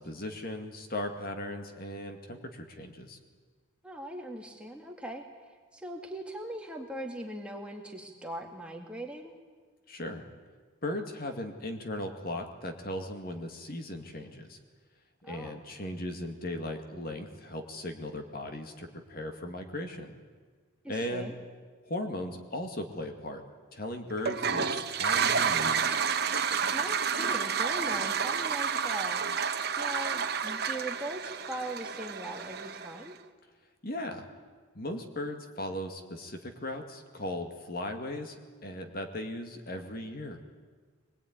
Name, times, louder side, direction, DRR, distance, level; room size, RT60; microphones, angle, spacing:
voice 1, 0.0-3.2 9.9-10.2 10.8-14.6 15.2-20.1 20.9-21.3 21.9-23.4 23.7-25.8 33.8-34.2 34.7-38.4 38.6-40.4, left 1 dB, 45° left, 5 dB, 2.2 m, -37 dB
voice 2, 3.8-5.2 5.7-9.3 15.2-15.6 20.8-21.4 26.7-33.1, right 1 dB, 5° right, 1 dB, 2.2 m, -40 dB
Toilet flush, 24.2-33.1, right 6 dB, 50° right, 1.2 m, -30 dB
23.5 x 21.0 x 9.6 m, 1.5 s
head